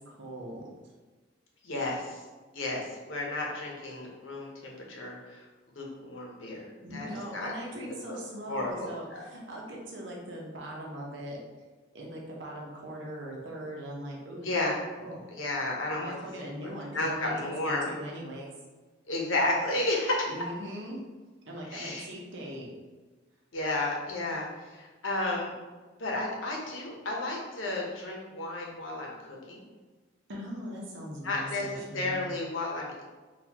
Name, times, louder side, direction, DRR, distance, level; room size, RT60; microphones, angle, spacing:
voice 1, 0.0-0.6 6.8-11.4 11.9-14.5 15.0-15.2 16.0-18.5 20.3-21.0 21.5-22.7 30.3-32.3, equal, 75° right, -2 dB, 0.9 m, -40 dB
voice 2, 1.6-2.2 2.5-5.5 5.7-8.2 8.5-9.2 14.4-14.8 15.3-16.7 16.9-17.9 19.1-20.3 21.7-22.0 23.5-25.5 26.0-29.6 31.2-33.0, left 2 dB, 90° left, -1 dB, 0.8 m, -33 dB
4.0 x 2.4 x 2.9 m, 1.3 s
head